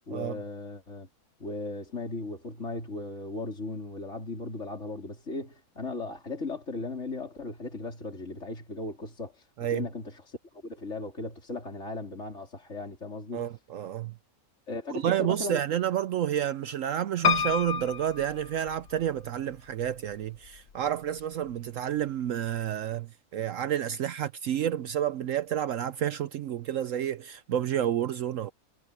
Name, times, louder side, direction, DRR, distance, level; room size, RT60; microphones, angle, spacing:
voice 1, 0.1-1.1 1.4-9.4 9.7-10.4 10.6-13.5 14.7-15.6, left 2 dB, 50° left, 4.3 m, -37 dB
voice 2, 13.3-14.1 14.9-28.5, right 10 dB, 65° right, 0.9 m, -30 dB
Piano, 17.2-19.2 19.8-20.6 20.9-21.0 21.2-21.3, left 6 dB, 75° left, 1.6 m, -29 dB
omnidirectional pair, 1.6 m